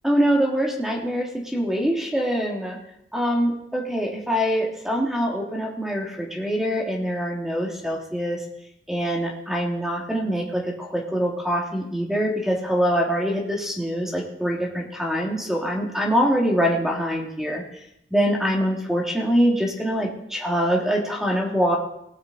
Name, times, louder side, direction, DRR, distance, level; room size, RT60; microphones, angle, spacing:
voice 1, 0.0-2.8 3.1-8.4 8.9-17.6 18.1-21.8, equal, 5° right, -1 dB, 1.7 m, -24 dB
18.5 x 7.8 x 3.9 m, 0.77 s
head